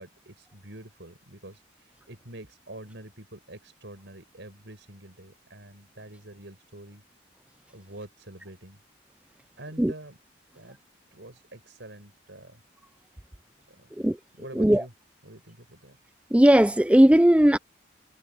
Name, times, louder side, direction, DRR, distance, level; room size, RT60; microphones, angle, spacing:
voice 1, 0.0-7.0 7.7-8.8 9.6-10.2 10.5-10.8 11.1-12.6 13.7-13.9 14.3-14.9 15.2-16.0, right 1 dB, 75° right, 5.1 m, -46 dB
voice 2, 16.3-17.6, equal, 5° right, 0.4 m, -17 dB
head